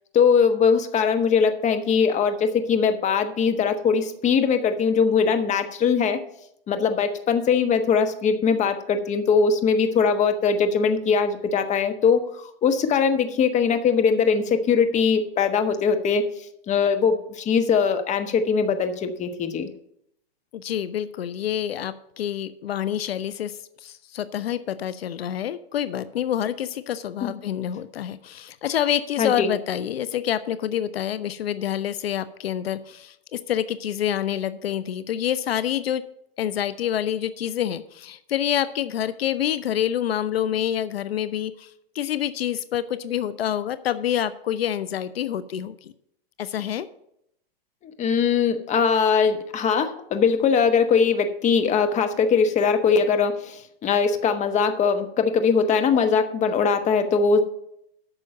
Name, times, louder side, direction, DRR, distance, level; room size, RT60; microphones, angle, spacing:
voice 1, 0.1-6.2 6.7-16.2 16.7-19.7 27.2-27.3 29.2-29.5 47.8-57.4, left 6 dB, 25° left, 8 dB, 1.1 m, -21 dB
voice 2, 20.5-36.0 36.4-45.9 46.4-46.9, left 10 dB, 80° left, 16 dB, 0.7 m, -27 dB
8.7 x 6.3 x 7.6 m, 0.76 s
hypercardioid pair, 120°, 30 cm